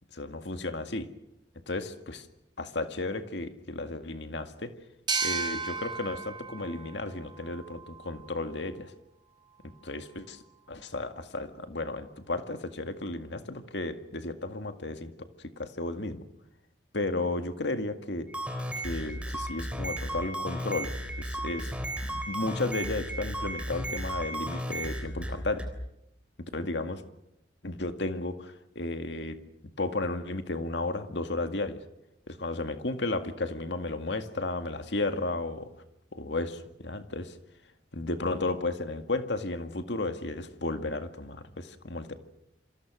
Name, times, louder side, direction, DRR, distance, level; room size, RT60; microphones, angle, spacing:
voice 1, 0.1-1.1 1.7-2.3 2.6-4.7 5.2-8.9 9.8-10.4 10.7-15.1 15.6-16.2 16.9-18.3 18.8-21.7 22.0-25.7 26.5-27.0 27.6-29.4 29.8-31.8 32.3-35.7 36.1-37.4 37.9-42.2, left 2 dB, 70° left, 8 dB, 2.0 m, -33 dB
sound 1, 5.1-8.4, right 4 dB, 25° right, 2.2 m, -35 dB
sound 2, 18.3-25.7, right 1 dB, 5° right, 3.5 m, -34 dB
28.0 x 26.0 x 6.3 m, 0.85 s
head